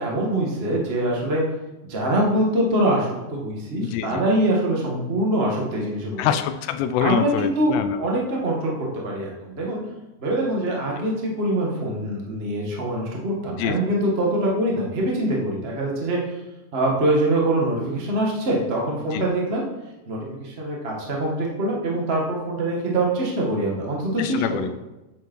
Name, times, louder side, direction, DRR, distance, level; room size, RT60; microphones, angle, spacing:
voice 1, 0.0-1.4 1.9-6.3 7.0-9.8 10.2-16.2 16.7-19.6 20.1-24.7, right 1 dB, 75° right, -2 dB, 0.5 m, -24 dB
voice 2, 3.8-4.2 6.2-8.0 13.6-13.8 19.1-19.3 24.2-24.7, left 9 dB, 90° left, 10 dB, 2.7 m, -25 dB
11.0 x 8.1 x 4.6 m, 1.0 s
omnidirectional pair, 4.7 m